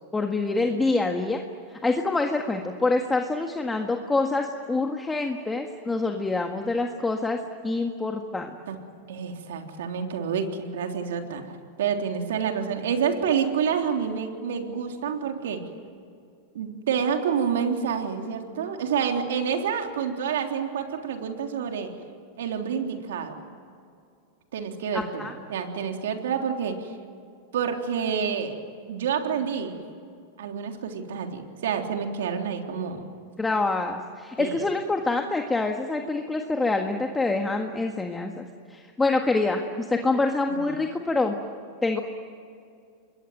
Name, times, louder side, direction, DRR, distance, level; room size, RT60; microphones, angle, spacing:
voice 1, 0.1-1.4 1.7-7.4 7.6-8.5 24.9-25.3 33.4-38.4 38.7-41.3 41.8-42.0, left 3 dB, 10° left, 3 dB, 1.7 m, -26 dB
voice 2, 9.1-11.5 11.8-15.7 16.5-21.9 22.4-23.4 24.5-26.9 27.5-28.6 28.9-29.8 30.4-33.0 34.4-34.6 40.6-40.7, right 7 dB, 80° right, 4 dB, 3.5 m, -28 dB
27.0 x 21.5 x 9.3 m, 2.4 s
hypercardioid pair, 125°, 0 cm